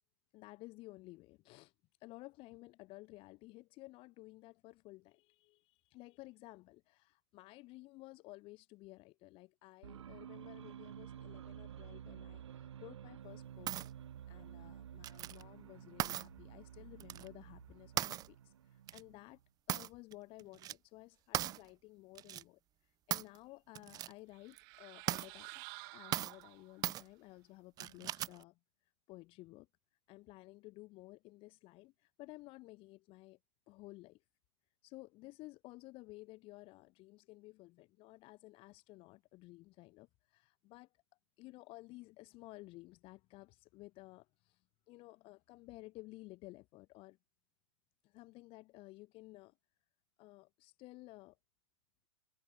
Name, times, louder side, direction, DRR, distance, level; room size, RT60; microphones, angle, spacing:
voice 1, 0.3-1.7 2.0-13.8 14.3-19.4 19.7-25.6 25.9-28.6 29.1-29.7 30.1-33.4 33.7-34.2 34.8-40.9 41.4-47.2 48.0-49.6 50.2-51.4, left 21 dB, 35° left, 3.6 m, -55 dB
sound 1, 9.8-19.4, right 10 dB, 70° right, 6.0 m, -52 dB
sound 2, 13.7-13.9 15.0-15.4 16.0-16.3 17.0-17.3 18.0-18.3 18.9-19.0 19.7-20.1 20.4-20.7 21.3-21.6 22.2-22.4 23.1-23.4 23.8-24.1 24.5-24.6 25.1-25.3 26.1-26.4 26.8-27.0 27.8-28.4, right 13 dB, 25° right, 0.7 m, -38 dB
sound 3, 24.3-27.0, right 34 dB, 45° right, 2.0 m, -52 dB
hypercardioid pair, 120°, 15 cm